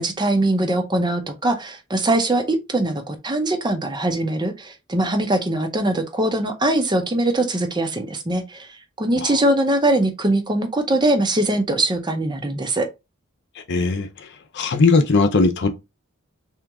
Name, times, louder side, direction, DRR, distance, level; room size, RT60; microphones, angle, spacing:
voice 1, 0.0-12.9, right 1 dB, 20° right, 0.6 m, -22 dB
voice 2, 13.7-14.3 14.5-15.7, left 3 dB, 55° left, 0.6 m, -19 dB
3.5 x 3.0 x 3.5 m
head